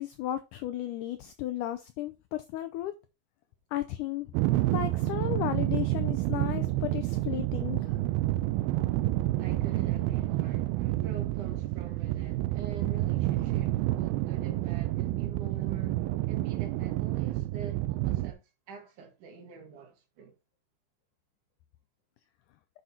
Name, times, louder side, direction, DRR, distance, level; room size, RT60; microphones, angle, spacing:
voice 1, 0.0-2.9 3.7-4.3 4.7-8.0, left 13 dB, 85° left, 1.8 m, -34 dB
sound 1, 4.3-18.3, right 16 dB, 90° right, 2.5 m, -29 dB
voice 2, 9.4-18.4 18.7-20.3, right 6 dB, 65° right, 2.9 m, -46 dB
9.8 x 6.2 x 2.8 m
omnidirectional pair, 4.2 m